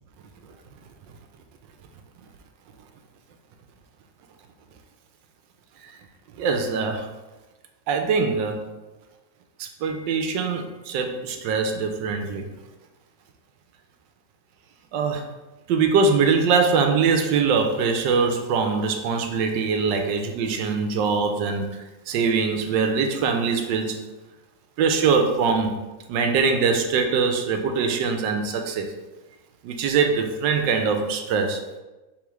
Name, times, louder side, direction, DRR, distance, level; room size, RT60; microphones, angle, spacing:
voice 1, 6.4-7.1 7.9-8.7 9.6-12.5 14.9-15.3 15.7-24.0 24.8-25.8 26.1-28.9 29.6-31.6, right 5 dB, 80° right, 4 dB, 1.2 m, -23 dB
4.9 x 3.5 x 3.0 m, 1.1 s
omnidirectional pair, 1.9 m